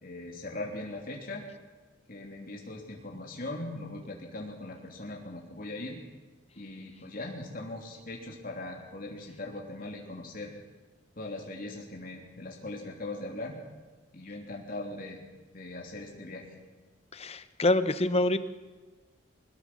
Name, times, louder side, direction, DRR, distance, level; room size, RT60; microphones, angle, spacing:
voice 1, 0.0-1.4 2.1-6.0 6.5-10.5 11.2-13.6 14.1-15.2 15.5-16.5, left 2 dB, 50° left, -1 dB, 3.3 m, -40 dB
voice 2, 17.1-18.4, left 2 dB, 35° left, 12 dB, 1.0 m, -26 dB
21.5 x 21.0 x 6.2 m, 1.3 s
head